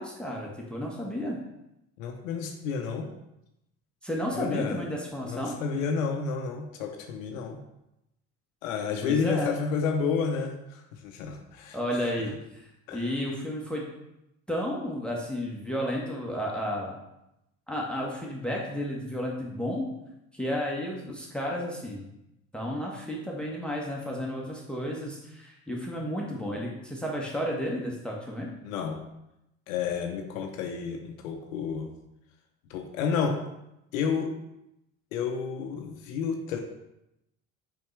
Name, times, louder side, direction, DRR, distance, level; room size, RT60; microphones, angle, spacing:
voice 1, 0.0-1.4 4.0-5.6 9.0-9.5 11.7-12.3 12.9-13.9 14.5-17.0 17.7-19.9 20.3-22.1 22.5-28.5, equal, ahead, -2 dB, 1.3 m, -32 dB
voice 2, 2.0-3.1 4.3-4.8 5.2-7.6 8.6-11.8 12.9-13.1 28.6-29.0 29.7-31.9 32.7-33.4 33.9-34.3 35.1-36.6, left 6 dB, 80° left, 4 dB, 0.7 m, -30 dB
5.7 x 5.5 x 3.2 m, 0.87 s
hypercardioid pair, 60°, 40 cm